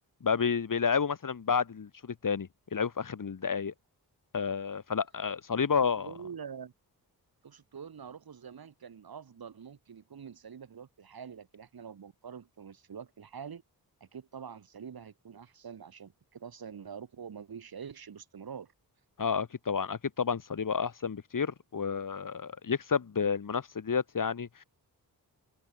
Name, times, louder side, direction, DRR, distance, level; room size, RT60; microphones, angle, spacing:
voice 1, 0.2-3.7 4.3-6.1 19.2-24.6, left 6 dB, 60° left, 4.5 m, -30 dB
voice 2, 6.0-6.7 7.4-13.6 14.0-18.7, right 7 dB, 75° right, 6.5 m, -45 dB
wide cardioid pair, 110°, 37 cm